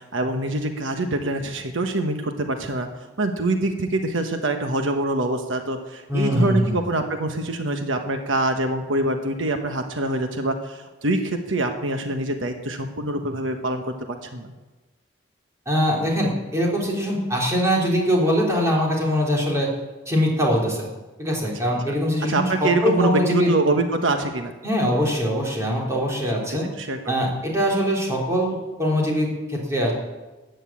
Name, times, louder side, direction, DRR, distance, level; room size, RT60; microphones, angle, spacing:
voice 1, 0.0-2.9 3.2-14.5 22.3-24.5 26.5-27.3, right 2 dB, 75° right, 5 dB, 1.2 m, -25 dB
voice 2, 6.1-6.8 15.7-19.7 20.1-20.9 21.2-23.5 24.6-26.7 27.1-29.9, equal, 15° right, -3 dB, 3.6 m, -22 dB
13.5 x 9.1 x 8.6 m, 1.2 s
head